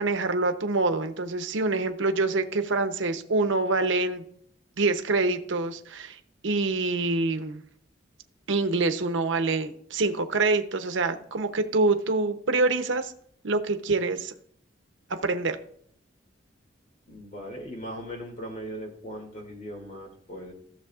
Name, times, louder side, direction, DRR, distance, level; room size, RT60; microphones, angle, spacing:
voice 1, 0.0-4.2 4.8-6.2 6.4-7.6 8.5-13.1 13.4-14.3 15.1-15.6, right 3 dB, 85° right, 7 dB, 0.8 m, -26 dB
voice 2, 17.1-20.5, equal, 40° left, 1 dB, 2.4 m, -39 dB
15.0 x 6.8 x 2.4 m, 0.65 s
head